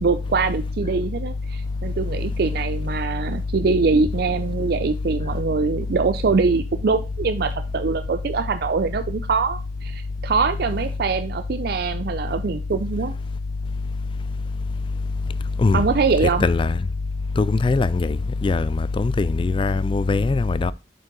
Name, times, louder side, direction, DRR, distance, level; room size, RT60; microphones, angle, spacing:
voice 1, 0.0-13.1 15.7-16.4, right 4 dB, 60° right, 0.4 m, -23 dB
voice 2, 17.4-18.1 18.4-18.6 19.0-20.7, left 3 dB, 30° left, 0.3 m, -20 dB
7.7 x 5.4 x 3.7 m
head